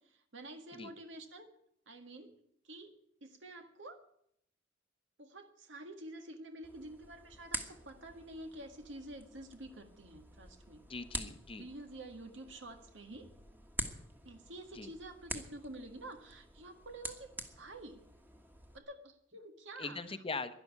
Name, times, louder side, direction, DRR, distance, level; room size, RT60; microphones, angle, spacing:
voice 1, 0.3-1.5 1.9-2.3 2.7-2.9 3.2-4.0 5.2-10.8 11.6-13.3 14.3-17.3 17.6-18.0 18.7-20.0, right 1 dB, 80° right, 6 dB, 1.8 m, -49 dB
sound 1, 6.6-18.8, right 1 dB, 10° right, 1.4 m, -47 dB
voice 2, 10.9-11.7 14.7-14.9 19.8-20.5, left 4 dB, 30° left, 10 dB, 0.9 m, -41 dB
12.0 x 11.0 x 9.6 m, 0.72 s
head